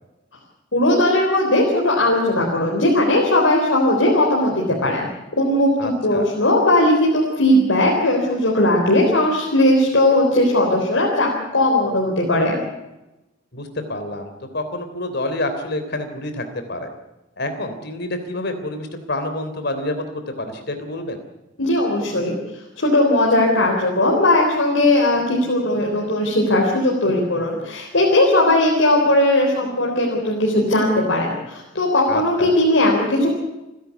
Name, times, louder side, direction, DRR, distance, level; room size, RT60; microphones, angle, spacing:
voice 1, 0.7-5.1 5.4-12.6 21.6-22.4 22.8-33.3, left 1 dB, 85° left, -2 dB, 4.0 m, -18 dB
voice 2, 5.8-6.3 13.5-16.9 17.4-20.0 20.4-21.2 32.1-32.5, left 1 dB, 60° left, 7 dB, 3.3 m, -28 dB
29.0 x 11.0 x 8.3 m, 0.99 s
head